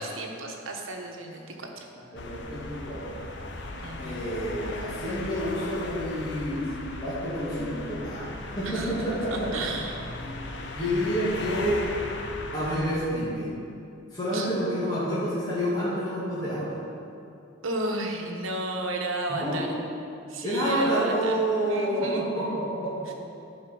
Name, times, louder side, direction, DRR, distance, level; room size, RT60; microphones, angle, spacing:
voice 1, 0.0-1.8 3.8-4.2 8.6-8.9 9.3-10.0 14.3-14.5 17.6-19.7 20.3-21.4 21.7-22.3 23.1-23.2, right 2 dB, 75° right, 1 dB, 1.1 m, -33 dB
sound 1, 2.1-13.0, left 2 dB, 55° left, 0.8 m, -37 dB
voice 2, 2.1-3.2 4.0-8.3 8.6-9.7 10.2-10.4 10.8-11.8 12.5-13.5 14.1-16.8 19.3-19.6 20.4-23.1, equal, 20° left, -10 dB, 2.1 m, -29 dB
10.0 x 5.0 x 6.2 m, 2.6 s
head